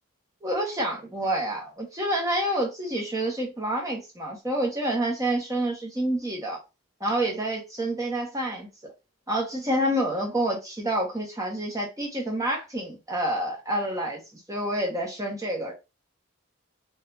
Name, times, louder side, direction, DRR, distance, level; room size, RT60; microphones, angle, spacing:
voice 1, 0.4-6.6 7.0-8.7 9.3-15.7, right 1 dB, 15° right, 1.2 m, -28 dB
4.4 x 2.8 x 2.7 m
head